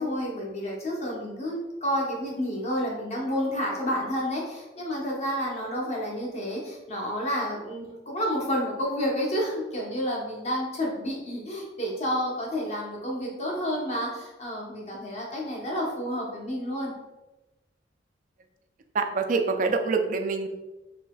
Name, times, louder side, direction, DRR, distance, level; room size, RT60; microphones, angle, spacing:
voice 1, 0.0-16.9, equal, 35° left, -3 dB, 0.9 m, -30 dB
voice 2, 18.9-20.5, right 4 dB, 45° right, 6 dB, 0.3 m, -25 dB
3.9 x 2.8 x 2.3 m, 1.0 s
head